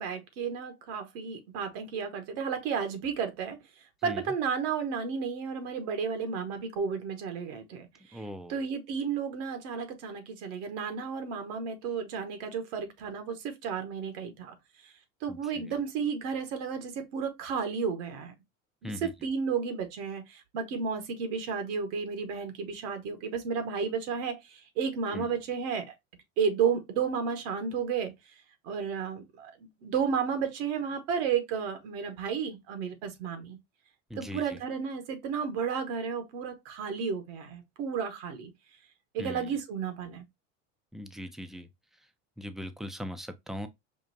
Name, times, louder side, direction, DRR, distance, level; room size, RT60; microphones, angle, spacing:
voice 1, 0.0-3.6 4.0-8.2 8.5-14.5 15.2-18.3 18.8-25.9 26.4-28.1 28.6-29.5 29.8-33.6 34.2-38.5 39.1-40.2, right 6 dB, 70° right, 1.2 m, -32 dB
voice 2, 8.1-8.6 15.3-15.8 18.8-19.1 25.1-25.3 34.1-34.6 39.2-39.6 40.9-41.7 42.4-43.7, equal, ahead, 0.4 m, -40 dB
5.2 x 2.4 x 2.6 m
hypercardioid pair, 85°, 39 cm